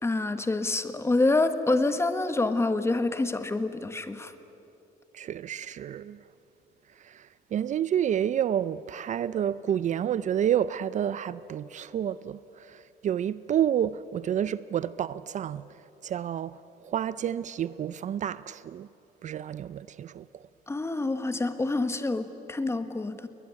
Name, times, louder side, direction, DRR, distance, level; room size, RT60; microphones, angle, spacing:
voice 1, 0.0-4.3 20.7-23.3, left 2 dB, 15° left, 1.4 m, -27 dB
voice 2, 5.1-6.2 7.0-15.6 16.0-18.9 19.2-20.4, right 10 dB, 45° right, 0.5 m, -29 dB
21.5 x 19.5 x 9.8 m
cardioid pair, 110°, 17 cm